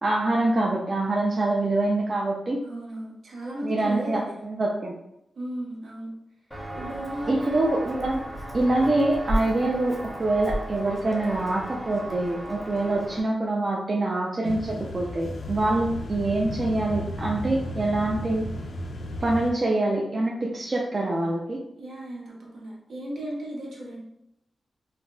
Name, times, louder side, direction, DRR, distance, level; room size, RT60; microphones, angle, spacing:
voice 1, 0.0-2.6 3.6-4.9 7.3-8.2 8.5-18.4 19.2-21.6, right 2 dB, 40° right, -2 dB, 0.4 m, -25 dB
voice 2, 2.6-4.3 5.4-6.1 6.7-7.7 21.8-24.0, right 1 dB, 80° right, -4 dB, 0.9 m, -35 dB
Walk footsteps, 6.5-13.2, right 1 dB, ahead, 0.6 m, -34 dB
sound 1, 14.4-19.5, left 1 dB, 75° left, 0.4 m, -34 dB
3.7 x 2.0 x 2.2 m, 0.83 s
wide cardioid pair, 100°, 0 cm